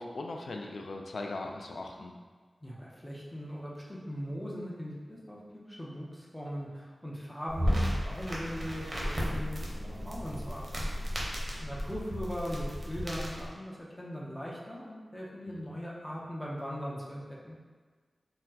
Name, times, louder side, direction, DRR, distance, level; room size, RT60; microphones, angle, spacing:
voice 1, 0.0-2.1 15.5-15.6, left 2 dB, 75° left, 2 dB, 0.3 m, -39 dB
voice 2, 2.6-10.9 11.6-17.6, equal, 10° left, -5 dB, 0.6 m, -40 dB
sound 1, 7.5-13.5, equal, 40° right, 0.7 m, -34 dB
4.1 x 2.1 x 2.7 m, 1.5 s
wide cardioid pair, 95°, 0 cm